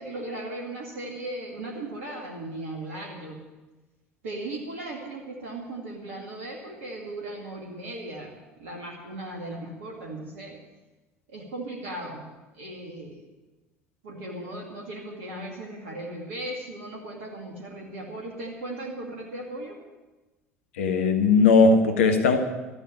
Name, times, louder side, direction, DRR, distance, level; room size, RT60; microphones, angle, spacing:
voice 1, 0.0-3.4 4.2-10.6 11.3-13.2 14.0-19.8, right 1 dB, 70° right, -1 dB, 2.3 m, -37 dB
voice 2, 20.8-22.4, left 4 dB, 70° left, 6 dB, 1.5 m, -18 dB
14.0 x 8.7 x 9.7 m, 1.1 s
figure-of-eight pair, 65°, 7 cm